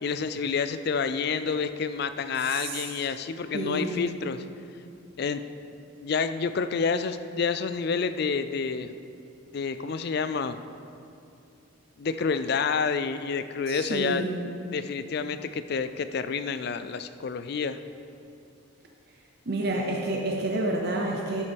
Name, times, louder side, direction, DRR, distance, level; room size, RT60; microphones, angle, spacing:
voice 1, 0.0-4.4 5.2-5.4 6.0-8.9 9.5-10.6 12.0-14.2 14.7-17.8, left 5 dB, 50° left, 11 dB, 0.4 m, -29 dB
voice 2, 2.4-2.9 3.5-4.1 13.7-14.5 19.5-21.4, right 1 dB, 50° right, 0 dB, 0.7 m, -29 dB
12.0 x 8.3 x 3.5 m, 2.6 s
head